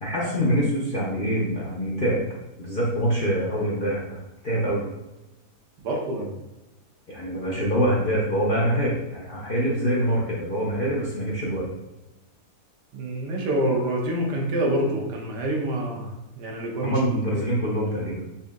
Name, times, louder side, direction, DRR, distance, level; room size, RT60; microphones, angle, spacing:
voice 1, 0.0-2.2 2.6-4.2 4.4-4.8 7.1-11.7 16.8-18.2, equal, 55° left, -5 dB, 0.5 m, -25 dB
voice 2, 5.8-6.3 12.9-17.0 17.3-17.4, right 1 dB, 85° right, 0 dB, 1.5 m, -27 dB
4.1 x 2.7 x 3.6 m, 1.0 s
omnidirectional pair, 1.7 m